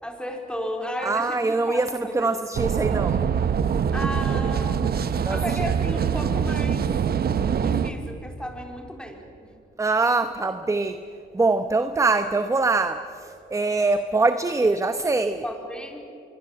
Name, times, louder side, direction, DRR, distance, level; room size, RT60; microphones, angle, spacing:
voice 1, 0.0-2.4 3.9-4.8 5.3-6.9 7.6-9.5 15.4-16.1, equal, 5° left, 2 dB, 4.1 m, -34 dB
voice 2, 1.0-1.9 2.1-3.2 5.2-5.6 9.8-11.0 11.3-15.4, right 3 dB, 15° right, 9 dB, 1.0 m, -23 dB
sound 1, 2.5-7.9, right 7 dB, 50° right, 1.1 m, -24 dB
24.5 x 23.5 x 7.9 m, 2.7 s
cardioid pair, 90°, 20 cm